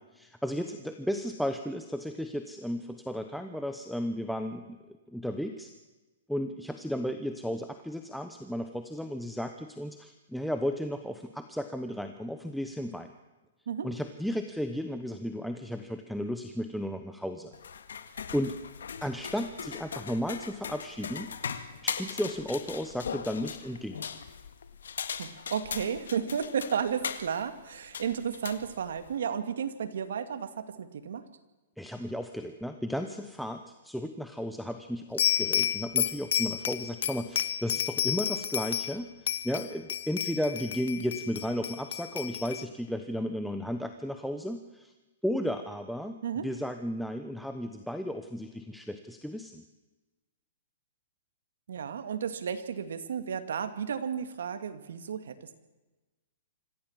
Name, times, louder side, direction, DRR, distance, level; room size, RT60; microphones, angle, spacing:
voice 1, 0.2-4.8 5.1-5.7 6.3-13.1 13.8-17.5 18.3-18.6 19.0-21.3 21.8-24.0 31.8-44.9 45.2-46.2 46.4-49.6, equal, ahead, 7 dB, 1.0 m, -34 dB
sound 1, 17.5-29.2, left 7 dB, 90° left, 1.8 m, -39 dB
voice 2, 25.2-31.3 46.2-46.5 51.7-55.6, right 7 dB, 80° right, 9 dB, 2.2 m, -33 dB
sound 2, 35.2-39.0 39.3-42.6, left 10 dB, 70° left, 1.2 m, -31 dB
26.0 x 15.0 x 7.4 m, 1.1 s
hypercardioid pair, 155°, 0 cm